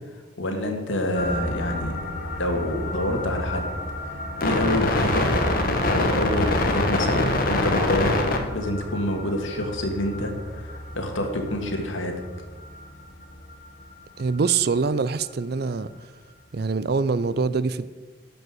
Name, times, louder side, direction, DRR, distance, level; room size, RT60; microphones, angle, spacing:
voice 1, 0.4-2.0 2.4-3.6 4.4-5.3 5.9-12.1, left 1 dB, 80° left, 1.8 m, -27 dB
sound 1, 1.1-12.9 13.2-13.3 13.5-13.8 14.2-14.4, left 1 dB, 45° left, 1.3 m, -26 dB
voice 2, 14.2-15.9 16.5-17.9, right 4 dB, 50° right, 0.4 m, -24 dB
12.0 x 5.5 x 7.6 m
head